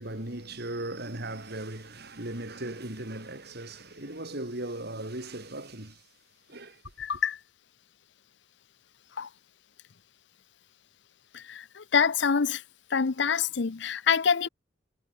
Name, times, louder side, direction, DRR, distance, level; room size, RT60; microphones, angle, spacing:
voice 1, 0.0-5.9 6.5-6.7, right 1 dB, 55° right, 4.2 m, -37 dB
voice 2, 7.0-7.4 9.2-9.3 11.3-12.6 12.9-14.5, left 6 dB, 65° left, 0.7 m, -26 dB
head